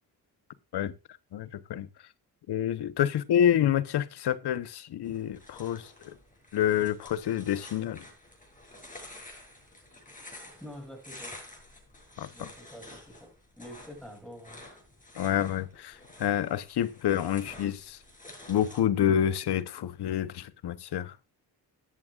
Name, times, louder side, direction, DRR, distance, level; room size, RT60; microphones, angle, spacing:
voice 1, 1.3-1.9 2.5-5.8 6.5-8.0 12.2-12.3 15.2-15.9 16.2-18.0 18.5-21.1, left 10 dB, 90° left, 0.9 m, -28 dB
sound 1, 5.0-18.8, left 1 dB, 20° left, 6.6 m, -50 dB
voice 2, 10.2-11.4 12.3-13.3 13.6-14.6, equal, ahead, 6.1 m, -47 dB
14.5 x 11.0 x 2.4 m
cardioid pair, 90°, 38 cm